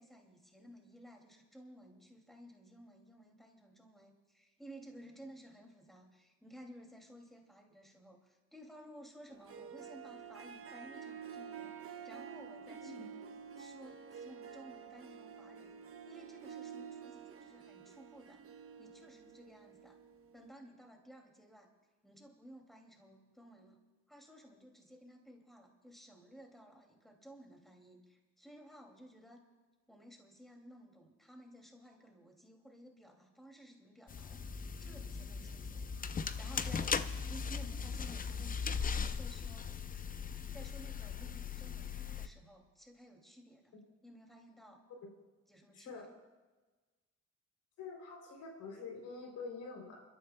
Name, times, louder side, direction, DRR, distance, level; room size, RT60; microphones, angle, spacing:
voice 1, 0.0-13.1 13.6-15.7 16.0-18.4 18.8-20.0 20.3-21.7 22.0-23.8 24.1-29.4 29.9-35.9 36.1-39.7 40.5-43.7 44.0-44.8 45.5-46.1, equal, ahead, 1 dB, 2.5 m, -56 dB
Harp, 9.3-20.5, right 7 dB, 50° right, 1.0 m, -50 dB
sound 1, 34.1-42.3, left 6 dB, 30° left, 0.6 m, -38 dB
voice 2, 45.7-46.1 47.8-50.0, left 4 dB, 80° left, 2 dB, 3.4 m, -46 dB
30.0 x 13.0 x 2.3 m, 1.3 s
cardioid pair, 90°, 30 cm